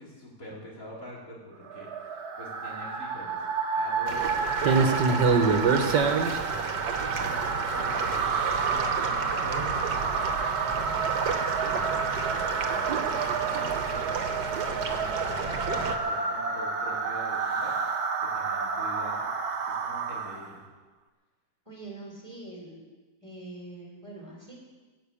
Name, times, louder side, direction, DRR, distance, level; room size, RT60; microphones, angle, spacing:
voice 1, 0.0-3.5 3.7-6.4 7.0-8.3 8.7-17.7 18.3-19.3 19.7-20.6, left 1 dB, 50° left, -5 dB, 4.3 m, -45 dB
sound 1, 1.6-20.6, right 5 dB, 65° right, 1.6 m, -30 dB
sound 2, 4.1-16.0, right 5 dB, 85° right, 1.9 m, -29 dB
voice 2, 21.6-22.8 23.2-24.6, right 2 dB, 15° right, -2 dB, 3.2 m, -43 dB
20.0 x 7.2 x 8.5 m, 1.3 s
omnidirectional pair, 1.8 m